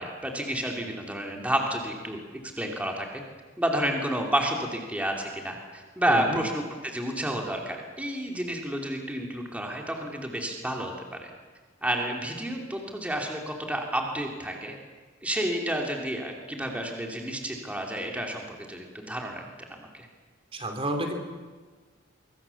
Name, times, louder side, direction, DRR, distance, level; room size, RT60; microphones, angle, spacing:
voice 1, 0.0-2.2 2.6-3.2 3.6-11.3 11.8-14.7 15.2-20.1, right 1 dB, 5° right, 1 dB, 2.9 m, -30 dB
voice 2, 6.1-6.4 20.5-21.2, right 1 dB, 30° right, 4 dB, 3.0 m, -30 dB
24.5 x 24.5 x 7.1 m, 1.4 s
head